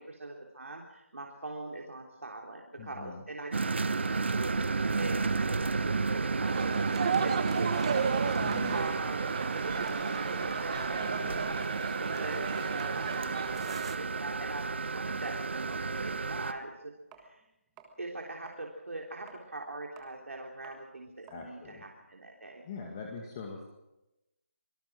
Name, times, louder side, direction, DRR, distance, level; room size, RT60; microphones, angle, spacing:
voice 1, 0.0-11.6 12.0-17.4 18.0-22.6, right 2 dB, 75° right, 0 dB, 3.4 m, -42 dB
voice 2, 2.8-3.2 8.4-8.8 11.1-11.4 21.3-21.8 22.7-23.6, left 5 dB, 20° left, 1 dB, 2.0 m, -43 dB
sound 1, 3.5-16.5, right 4 dB, 55° right, 1.2 m, -32 dB
sound 2, 6.4-13.9, right 6 dB, 25° right, 1.1 m, -34 dB
sound 3, 9.0-10.1 10.4-10.8 11.1-17.5 17.8-22.5, right 6 dB, 10° right, 1.4 m, -56 dB
24.5 x 19.0 x 6.2 m, 0.94 s
figure-of-eight pair, 170°, 7 cm